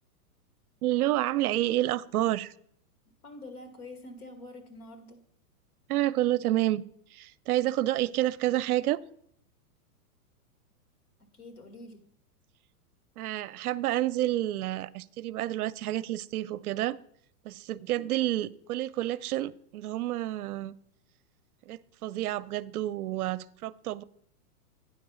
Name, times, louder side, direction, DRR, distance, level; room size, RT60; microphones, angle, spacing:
voice 1, 0.8-2.5 5.9-6.8 7.1-9.0 13.2-17.0 17.4-20.7 21.7-24.0, right 14 dB, 70° right, 16 dB, 0.5 m, -29 dB
voice 2, 3.2-5.2 11.2-12.0, left 2 dB, 70° left, 5 dB, 2.1 m, -46 dB
9.2 x 4.7 x 6.2 m, 0.68 s
hypercardioid pair, 165°, 46 cm